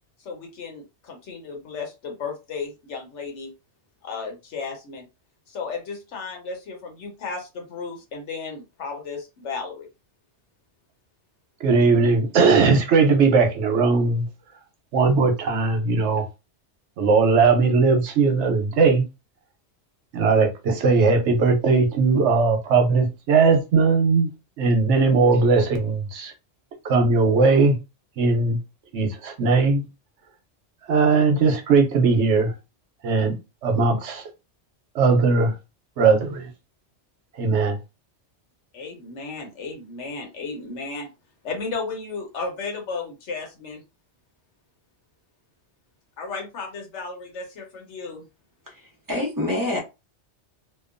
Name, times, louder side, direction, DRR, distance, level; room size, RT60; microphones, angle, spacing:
voice 1, 0.2-3.5 4.0-5.0 5.5-9.9 38.7-41.1 41.4-43.8 46.2-48.2, left 4 dB, 85° left, 1.2 m, -34 dB
voice 2, 11.6-14.3 14.9-16.2 17.0-19.0 20.1-24.3 24.6-26.3 26.8-27.8 28.2-28.6 28.9-29.9 30.9-32.5 33.0-33.4 33.6-34.2 34.9-35.5 36.0-36.5 37.4-37.8, right 4 dB, 85° right, 1.0 m, -19 dB
voice 3, 48.7-49.8, left 1 dB, 20° right, 0.8 m, -27 dB
2.8 x 2.2 x 2.5 m
omnidirectional pair, 1.2 m